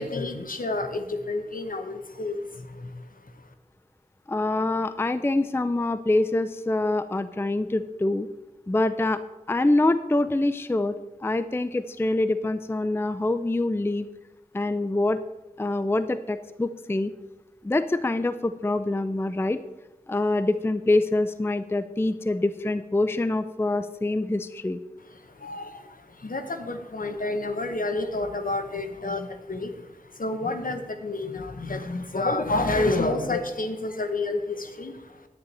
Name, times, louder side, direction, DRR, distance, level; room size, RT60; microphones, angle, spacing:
voice 1, 0.0-3.5 25.0-35.3, left 2 dB, 65° left, 7 dB, 1.0 m, -30 dB
voice 2, 4.3-8.3 8.7-9.2 9.5-11.0 11.2-14.1 14.5-15.2 15.6-17.1 17.6-19.6 20.1-24.8, left 2 dB, 15° left, 12 dB, 0.4 m, -25 dB
9.7 x 9.6 x 4.1 m, 1.0 s
wide cardioid pair, 60°, 16 cm